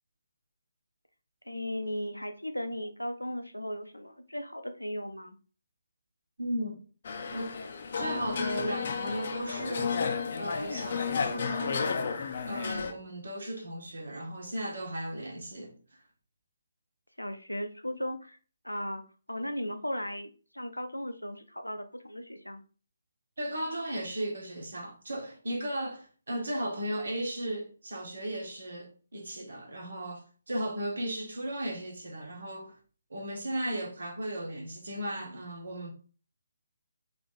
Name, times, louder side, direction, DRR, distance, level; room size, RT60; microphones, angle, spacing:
voice 1, 1.5-5.4 17.2-18.4 18.6-19.0 19.3-22.6, equal, 85° left, 0.7 m, -36 dB
voice 2, 6.4-6.8 7.3-7.6 7.9-10.1 10.4-11.9 12.5-15.8 23.4-32.8 33.1-35.9, right 1 dB, 60° right, 1.3 m, -36 dB
sound 1, 7.0-12.9, left 5 dB, 45° left, 0.6 m, -32 dB
3.5 x 3.4 x 3.7 m
figure-of-eight pair, 140°, 0 cm